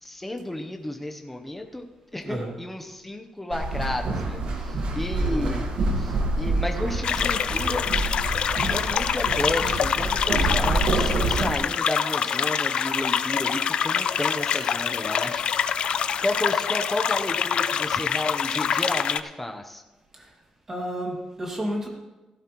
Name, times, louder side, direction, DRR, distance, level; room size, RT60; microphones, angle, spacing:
voice 1, 0.0-1.9 2.1-5.7 5.9-7.9 8.7-15.4 16.2-19.8, left 1 dB, 5° left, 3 dB, 0.7 m, -32 dB
voice 2, 2.2-2.5 5.2-5.6 20.1-20.3 20.7-21.9, equal, 20° right, -1 dB, 2.1 m, -32 dB
sound 1, 3.5-11.6, right 2 dB, 60° right, 1.6 m, -27 dB
sound 2, 7.0-19.2, left 7 dB, 50° left, 0.4 m, -25 dB
15.5 x 12.5 x 3.0 m, 1.1 s
wide cardioid pair, 175°, 2 cm